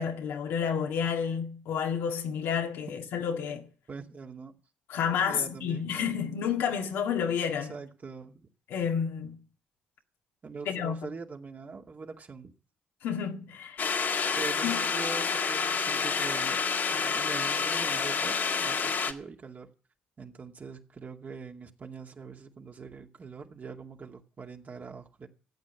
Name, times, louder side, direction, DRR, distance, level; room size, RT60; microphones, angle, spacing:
voice 1, 0.0-3.7 4.9-7.7 8.7-9.4 10.7-11.0 13.0-13.9 14.6-14.8, left 7 dB, 75° left, 1.9 m, -30 dB
voice 2, 3.9-4.5 5.0-6.4 7.7-8.5 10.4-12.5 14.4-16.6 16.9-19.7 20.2-25.3, right 4 dB, 45° right, 2.4 m, -43 dB
sound 1, 13.8-19.1, left 5 dB, 55° left, 1.9 m, -28 dB
14.5 x 8.5 x 8.4 m
supercardioid pair, 55°, 4 cm